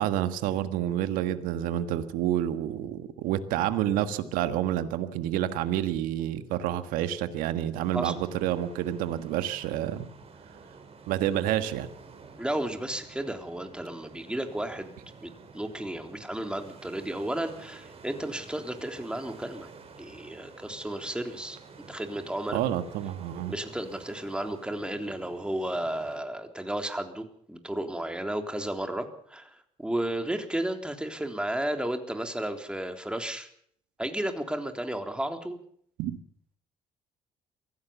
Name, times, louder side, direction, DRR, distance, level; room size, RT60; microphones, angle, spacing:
voice 1, 0.0-10.1 11.1-11.9 22.5-23.5 36.0-36.2, right 12 dB, 80° right, 10 dB, 1.5 m, -29 dB
sound 1, 7.7-26.2, right 4 dB, 45° right, 4.8 m, -50 dB
voice 2, 12.4-14.9 15.2-19.7 20.0-21.6 21.9-22.6 23.5-33.5 34.0-35.6, right 1 dB, 5° right, 5 dB, 3.7 m, -33 dB
23.0 x 16.0 x 7.1 m, 0.64 s
supercardioid pair, 65°, 14 cm